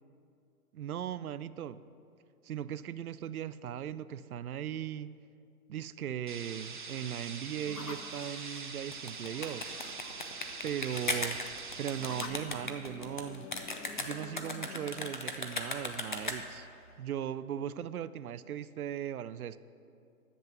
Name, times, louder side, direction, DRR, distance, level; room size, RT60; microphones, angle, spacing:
voice 1, 0.7-1.8 2.4-5.2 5.7-9.9 10.6-11.4 11.8-13.5 14.0-16.7 17.0-19.6, right 10 dB, 70° right, 15 dB, 0.5 m, -38 dB
sound 1, 6.3-12.3, right 5 dB, 35° right, 0.7 m, -44 dB
sound 2, 7.6-17.2, left 5 dB, 85° left, 1.2 m, -50 dB
sound 3, 8.8-16.7, left 2 dB, 35° left, 0.5 m, -38 dB
11.0 x 7.4 x 6.7 m, 2.5 s
hypercardioid pair, 175°, 46 cm